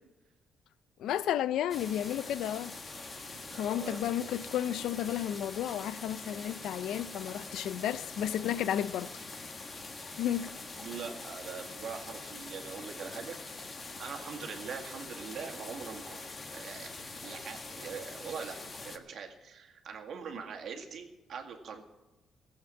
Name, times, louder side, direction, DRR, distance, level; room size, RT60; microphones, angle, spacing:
voice 1, 1.0-2.7 3.6-9.1 10.2-10.5, left 10 dB, 85° left, 0.5 m, -32 dB
sound 1, 1.7-19.0, left 3 dB, 30° left, 1.4 m, -44 dB
voice 2, 3.5-4.0 10.8-13.4 14.0-18.6 18.8-21.8, right 6 dB, 60° right, 2.0 m, -42 dB
17.0 x 8.0 x 7.5 m
cardioid pair, 125°, 0 cm